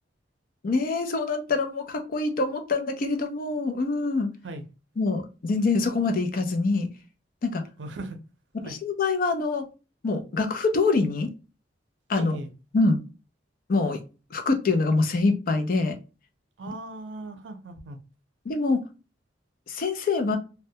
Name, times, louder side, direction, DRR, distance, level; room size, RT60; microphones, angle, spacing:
voice 1, 0.6-4.3 5.0-6.9 7.4-7.6 8.5-9.7 10.0-11.3 12.1-12.4 12.7-13.0 13.7-14.0 14.3-16.0 18.5-18.8 19.7-20.4, left 3 dB, 50° left, 0.4 m, -25 dB
voice 2, 7.8-8.2 8.6-8.8 12.2-12.5 16.6-18.0, right 2 dB, 85° right, 0.5 m, -38 dB
2.1 x 2.1 x 2.7 m
head